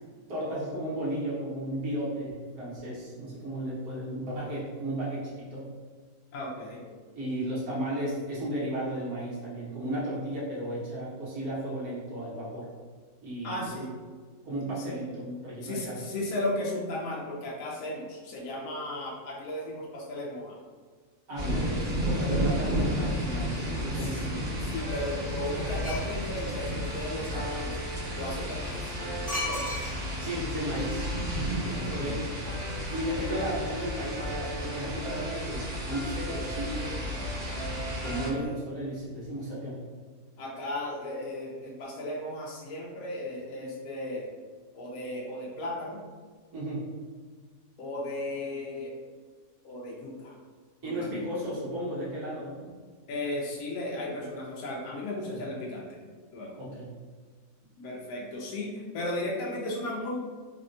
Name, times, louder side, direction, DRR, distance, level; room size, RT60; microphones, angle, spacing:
voice 1, 0.3-5.7 7.1-12.7 13.2-13.7 14.4-16.0 21.3-24.3 30.2-31.1 32.0-32.2 32.9-37.0 38.0-39.8 46.5-46.9 50.8-52.7 55.2-55.4 56.5-56.9, right 1 dB, 70° right, -8 dB, 1.5 m, -34 dB
voice 2, 6.3-6.8 13.4-13.9 14.8-15.0 15.2-20.6 22.3-22.4 23.9-27.8 28.1-28.9 29.4-29.6 31.6-32.2 38.1-38.5 40.4-44.3 44.7-46.0 47.8-49.0 49.6-50.4 50.8-51.3 53.1-56.0 56.3-56.6 57.8-60.2, left 1 dB, 70° left, -3 dB, 1.0 m, -35 dB
sound 1, 21.3-38.3, equal, 90° right, 1.4 m, -32 dB
sound 2, 24.8-38.5, right 2 dB, 50° right, 1.0 m, -41 dB
sound 3, 25.8-26.1 29.3-30.2 30.5-30.6, left 1 dB, 5° left, 0.8 m, -33 dB
3.5 x 2.2 x 2.5 m, 1.5 s
omnidirectional pair, 1.7 m